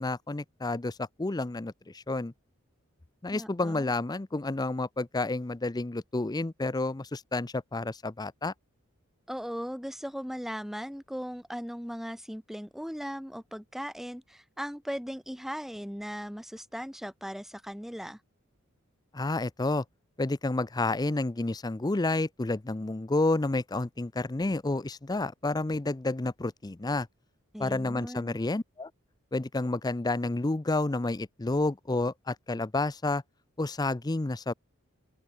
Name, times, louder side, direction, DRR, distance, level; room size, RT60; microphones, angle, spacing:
voice 1, 0.0-2.3 3.2-8.5 19.1-19.8 20.2-27.1 27.6-28.9 29.3-33.2 33.6-34.5, left 2 dB, 20° left, 0.5 m, -30 dB
voice 2, 3.3-3.9 9.3-18.2 27.5-28.4, equal, ahead, 5.2 m, -38 dB
open air
head